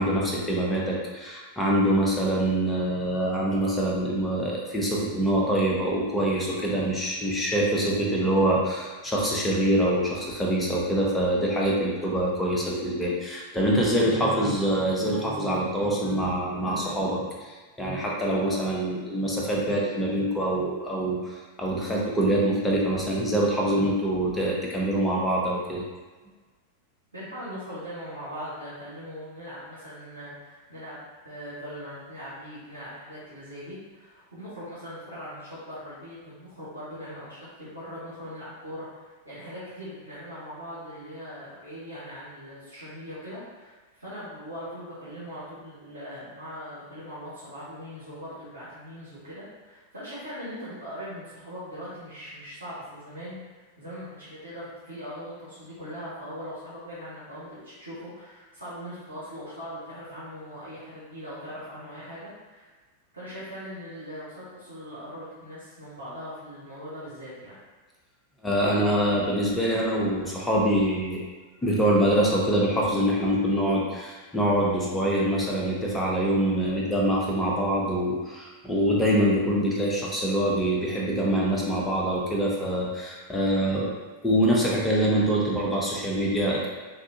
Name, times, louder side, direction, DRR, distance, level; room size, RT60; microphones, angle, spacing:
voice 1, 0.0-17.5 17.8-25.8 68.4-71.2 71.6-83.9 84.2-86.7, right 1 dB, 10° left, -4 dB, 0.7 m, -25 dB
voice 2, 27.1-31.0 31.2-62.7 63.1-67.6, equal, 75° right, -11 dB, 1.2 m, -40 dB
3.6 x 2.5 x 2.6 m, 1.3 s
figure-of-eight pair, 90°, 0 cm